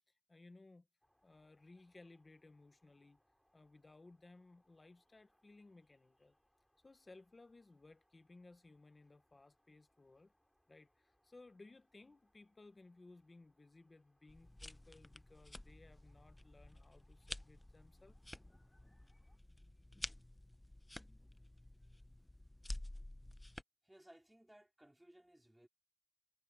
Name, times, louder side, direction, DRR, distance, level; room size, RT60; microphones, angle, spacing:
voice 1, 0.3-0.9 1.2-3.2 3.5-6.4 6.8-10.3 10.7-18.2, left 2 dB, 85° left, 0.9 m, -61 dB
sound 1, 1.0-19.4, equal, 15° left, 3.2 m, -80 dB
sound 2, 14.3-23.6, left 1 dB, 30° left, 0.7 m, -51 dB
voice 2, 23.8-25.7, right 1 dB, 20° right, 4.3 m, -63 dB
wide cardioid pair, 50°, 0 cm